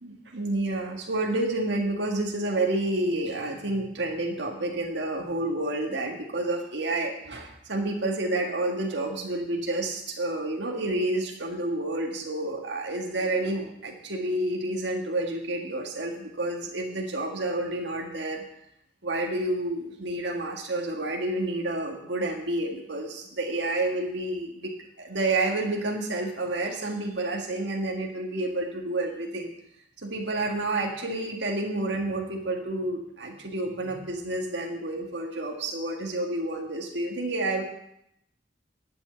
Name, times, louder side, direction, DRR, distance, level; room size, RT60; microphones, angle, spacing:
voice 1, 0.0-18.4 19.0-24.7 25.0-29.5 30.0-37.6, right 2 dB, 70° right, 0 dB, 1.8 m, -29 dB
11.5 x 6.3 x 7.9 m, 0.78 s
head